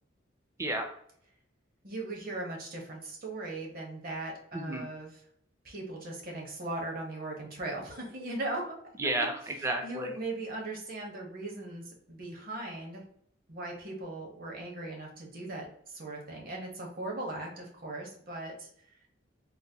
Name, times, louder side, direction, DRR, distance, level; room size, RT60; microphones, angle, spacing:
voice 1, 0.6-0.9 4.5-4.9 9.0-10.1, right 2 dB, 15° right, 4 dB, 0.4 m, -32 dB
voice 2, 1.8-5.2 5.6-8.7 9.5-13.0 13.5-18.7, right 2 dB, 50° right, 0 dB, 1.0 m, -39 dB
3.9 x 2.2 x 2.7 m, 0.66 s
head